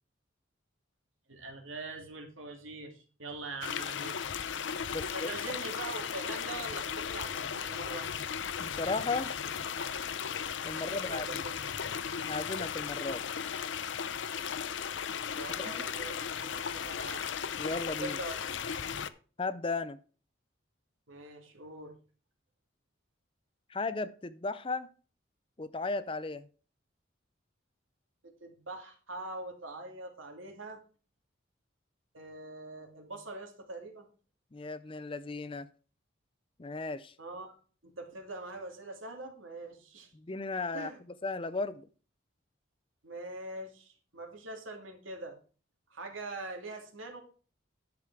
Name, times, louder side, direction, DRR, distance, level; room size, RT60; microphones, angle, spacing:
voice 1, 1.3-4.2 4.9-8.1 10.7-11.5 15.4-17.2 18.0-18.3 21.1-21.9 28.2-30.8 32.1-34.1 37.2-37.5 38.0-40.1 40.7-41.0 43.0-45.4 45.9-47.2, right 2 dB, 80° right, 4 dB, 2.5 m, -43 dB
sound 1, 3.6-19.1, left 7 dB, 65° left, 0.6 m, -36 dB
voice 2, 4.9-5.3 8.6-9.3 10.6-11.4 12.2-13.3 15.6-15.8 17.6-18.2 19.4-20.0 23.7-24.9 25.6-26.5 34.5-35.7 36.6-37.1 40.1-41.9, left 3 dB, 25° left, 14 dB, 0.5 m, -35 dB
10.5 x 6.7 x 4.7 m, 0.38 s
head